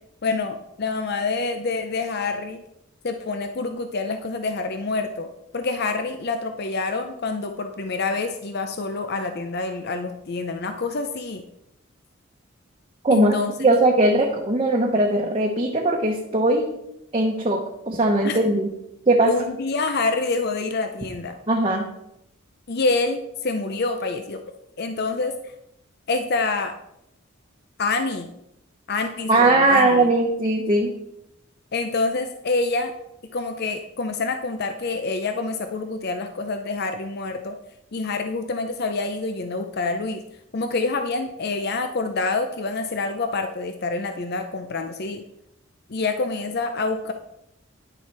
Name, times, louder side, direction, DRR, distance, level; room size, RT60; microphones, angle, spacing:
voice 1, 0.2-2.6 3.0-11.4 13.1-13.5 18.2-18.4 19.2-21.4 22.7-24.4 24.8-25.5 26.1-26.7 27.8-28.3 28.9-30.1 31.7-32.9 33.3-37.6 37.9-40.2 40.5-45.2 45.9-47.1, left 3 dB, 50° left, 7 dB, 0.6 m, -27 dB
voice 2, 13.0-16.6 17.1-17.6 17.9-18.7 19.1-19.3 21.5-21.9 29.3-30.9, right 2 dB, 25° right, -1 dB, 1.0 m, -19 dB
10.0 x 6.9 x 4.6 m, 0.83 s
head